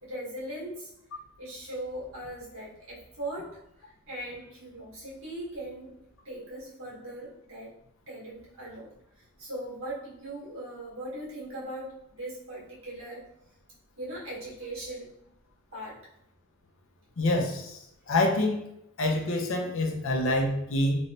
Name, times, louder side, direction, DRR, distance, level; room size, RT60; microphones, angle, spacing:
voice 1, 0.0-0.9 1.4-6.0 6.2-7.7 8.1-13.3 14.0-15.1 15.7-16.0, right 1 dB, 70° right, -6 dB, 1.5 m, -39 dB
voice 2, 17.2-17.8 18.1-18.6 19.0-21.0, left 1 dB, 65° left, 3 dB, 0.6 m, -26 dB
3.1 x 3.0 x 2.7 m, 0.80 s
head